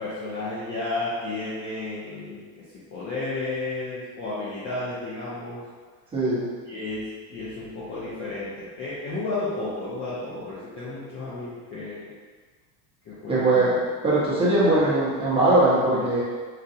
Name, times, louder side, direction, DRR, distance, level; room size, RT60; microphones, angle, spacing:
voice 1, 0.0-2.6 2.9-5.6 6.7-12.1 13.1-13.7 14.6-14.9, left 2 dB, 30° left, -9 dB, 0.4 m, -32 dB
voice 2, 6.1-6.5 13.3-13.8 14.0-16.2, right 2 dB, 10° right, -9 dB, 0.8 m, -20 dB
3.9 x 2.1 x 2.7 m, 1.5 s
supercardioid pair, 140°, 48 cm